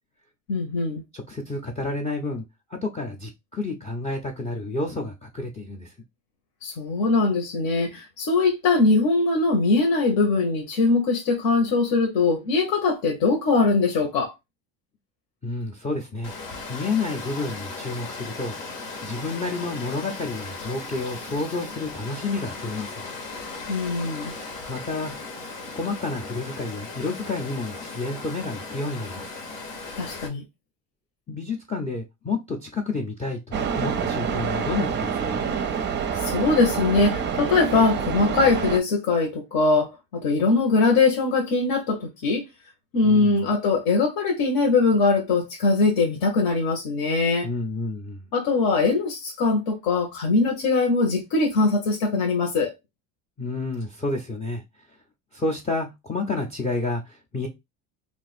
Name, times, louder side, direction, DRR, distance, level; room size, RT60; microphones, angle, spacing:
voice 1, 0.5-1.0 6.6-14.3 23.7-24.3 30.0-30.4 36.2-42.4 42.9-47.5 48.3-52.7, left 3 dB, 60° left, 1.1 m, -21 dB
voice 2, 1.1-2.4 2.7-5.9 15.4-16.3 16.7-18.5 19.0-23.1 24.7-25.1 25.8-29.3 31.3-35.5 43.0-43.4 47.4-48.2 53.4-54.6 55.3-57.5, left 3 dB, 15° left, 0.5 m, -30 dB
Water, 16.2-30.3, left 3 dB, 80° left, 1.3 m, -37 dB
sound 1, 33.5-38.8, right 6 dB, 30° right, 0.5 m, -27 dB
2.5 x 2.4 x 4.0 m
supercardioid pair, 115°, 39 cm